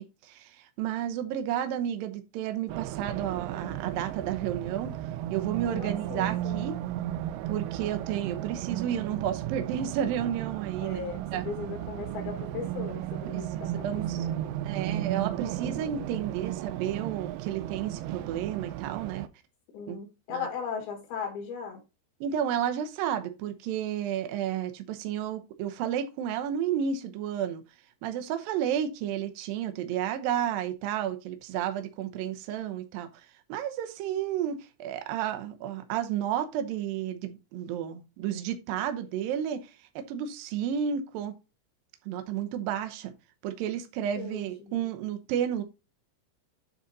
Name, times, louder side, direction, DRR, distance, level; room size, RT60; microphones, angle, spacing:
voice 1, 0.0-4.9 5.3-6.8 7.5-11.0 11.3-11.4 13.3-14.3 14.6-19.3 19.9-20.0 20.3-20.5 22.2-27.6 28.0-39.7 40.0-41.3 42.1-43.1 43.4-45.6, right 9 dB, 75° right, 2.2 m, -32 dB
Race car auto racing, 2.7-19.3, right 13 dB, 90° right, 2.2 m, -34 dB
voice 2, 5.7-6.7 10.8-13.9 14.2-14.5 19.7-21.8 44.1-44.9, left 6 dB, 65° left, 3.1 m, -38 dB
9.1 x 4.1 x 4.0 m
omnidirectional pair, 5.1 m